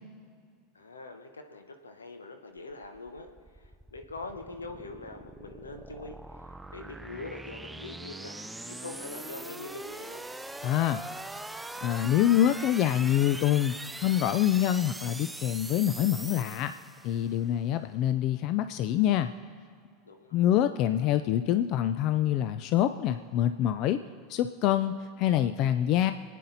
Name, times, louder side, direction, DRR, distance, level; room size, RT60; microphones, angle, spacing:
voice 1, 0.7-3.3 3.5-6.2 6.7-10.2 20.0-20.4, left 3 dB, 85° left, 5 dB, 1.2 m, -43 dB
sound 1, 2.8-17.3, right 2 dB, 10° right, 0.5 m, -42 dB
voice 2, 10.6-11.0 11.8-16.7 17.0-19.3 20.3-24.0 24.3-26.1, left 11 dB, 50° left, 11 dB, 0.5 m, -26 dB
25.0 x 9.2 x 4.1 m, 2.1 s
hypercardioid pair, 85°, 0 cm